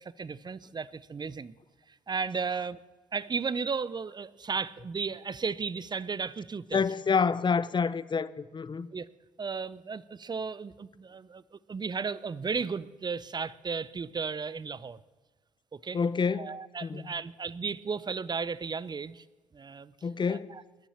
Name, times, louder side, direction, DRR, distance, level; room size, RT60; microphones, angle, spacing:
voice 1, 0.0-1.5 2.1-2.8 3.1-6.8 8.9-9.1 9.4-15.0 15.7-16.0 16.3-19.2 19.5-19.9 20.3-20.6, right 5 dB, 30° right, 0.6 m, -34 dB
voice 2, 6.7-8.9 15.9-16.5 16.8-17.0 20.0-20.5, left 5 dB, 35° left, 0.7 m, -28 dB
20.5 x 7.1 x 7.2 m
hypercardioid pair, 50°, 14 cm